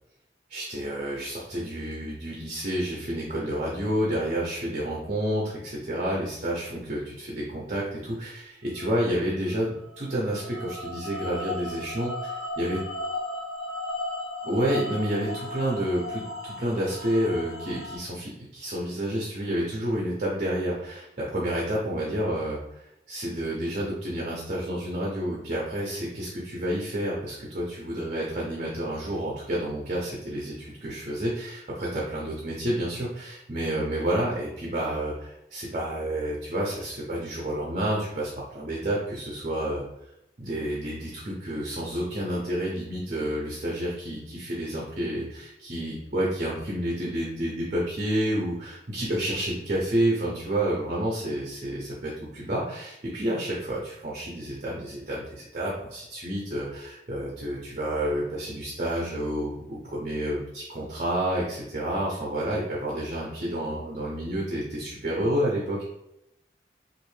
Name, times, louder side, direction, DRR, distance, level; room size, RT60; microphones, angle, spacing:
voice 1, 0.5-12.8 14.4-39.8 40.4-65.9, right 1 dB, 40° right, -4 dB, 0.7 m, -29 dB
sound 1, 8.8-9.1 9.9-18.0, left 1 dB, 55° left, 1.0 m, -35 dB
3.1 x 2.6 x 3.2 m, 0.84 s
head